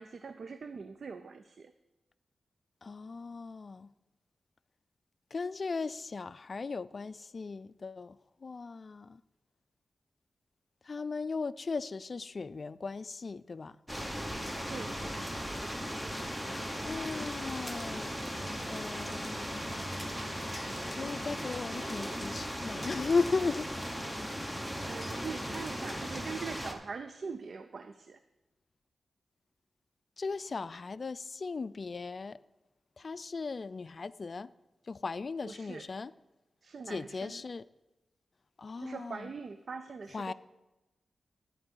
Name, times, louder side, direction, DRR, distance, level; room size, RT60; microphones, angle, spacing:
voice 1, 0.0-1.7 14.7-15.0 24.8-28.2 35.4-35.9 36.6-37.5 38.8-40.3, right 5 dB, 65° right, 10 dB, 0.4 m, -42 dB
voice 2, 2.8-3.9 5.3-9.2 10.8-13.8 16.8-18.1 18.7-19.6 20.8-23.7 30.2-32.4 33.0-34.5 34.9-36.1 36.9-37.6 38.6-39.3 40.1-40.3, left 4 dB, 50° left, 16 dB, 0.3 m, -37 dB
sound 1, 13.9-26.7, equal, 5° right, 1.1 m, -37 dB
11.0 x 4.6 x 7.9 m, 1.0 s
cardioid pair, 60°, 0 cm